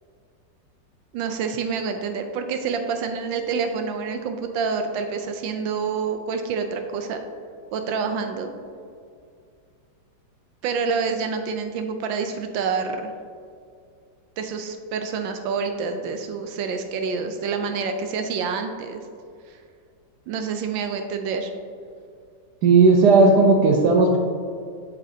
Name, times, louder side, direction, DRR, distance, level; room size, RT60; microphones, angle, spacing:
voice 1, 1.1-7.2 7.7-8.5 10.6-13.1 14.4-19.0 19.5-19.6 20.3-21.5, right 5 dB, 85° right, 6 dB, 1.4 m, -27 dB
voice 2, 22.6-24.2, right 3 dB, 70° right, 1 dB, 1.2 m, -15 dB
8.3 x 8.2 x 2.7 m, 2.3 s
omnidirectional pair, 2.0 m